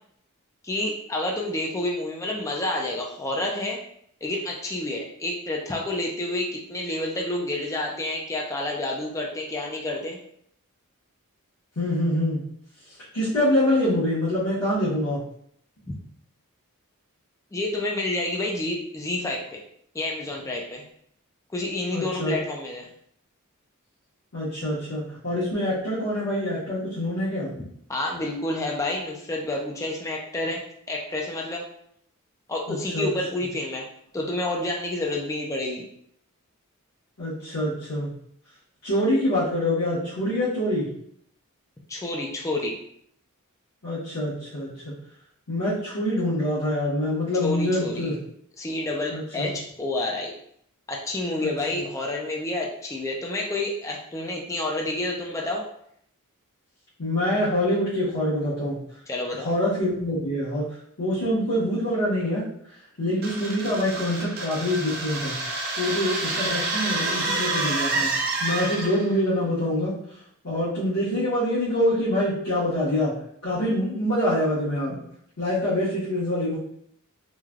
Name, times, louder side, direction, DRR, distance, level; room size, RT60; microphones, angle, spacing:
voice 1, 0.6-3.8 4.2-10.2 17.5-19.6 19.9-20.8 21.5-22.9 27.9-31.6 32.5-33.9 34.1-35.9 41.9-42.7 47.4-48.1 48.6-50.3 50.9-55.6 59.1-59.5, left 2 dB, 15° left, -1 dB, 0.3 m, -29 dB
voice 2, 11.8-12.4 13.1-15.2 21.9-22.3 24.3-27.5 32.9-33.1 37.2-38.1 38.8-40.9 43.8-44.7 45.5-48.1 49.1-49.5 51.4-51.8 57.0-58.8 59.4-60.7 61.0-62.5 63.0-65.4 65.8-68.1 68.4-70.0 70.4-73.1 73.4-75.0 75.4-76.6, left 1 dB, 80° left, -11 dB, 1.0 m, -25 dB
sound 1, 63.2-69.1, right 2 dB, 45° right, 0.5 m, -28 dB
3.1 x 2.2 x 2.3 m, 0.68 s
head